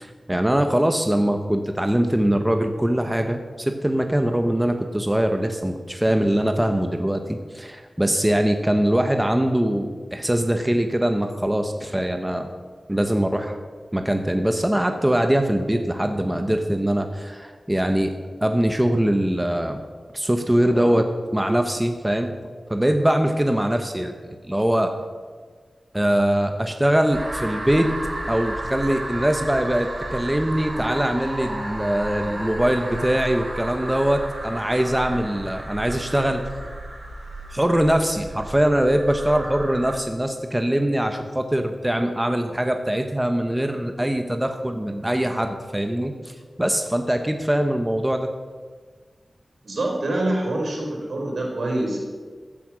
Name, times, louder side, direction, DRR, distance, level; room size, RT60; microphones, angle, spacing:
voice 1, 0.0-12.5 12.9-13.6 13.9-18.1 18.4-19.8 20.1-21.1 21.3-22.3 22.7-24.1 24.4-24.9 25.9-27.9 28.3-36.4 37.5-48.3, right 1 dB, 10° right, 5 dB, 1.0 m, -22 dB
sound 1, 27.1-40.0, right 1 dB, 45° right, 3.3 m, -33 dB
voice 2, 49.6-52.1, right 1 dB, 80° right, 0 dB, 4.6 m, -25 dB
15.0 x 8.7 x 6.2 m, 1.5 s
wide cardioid pair, 90°, 0 cm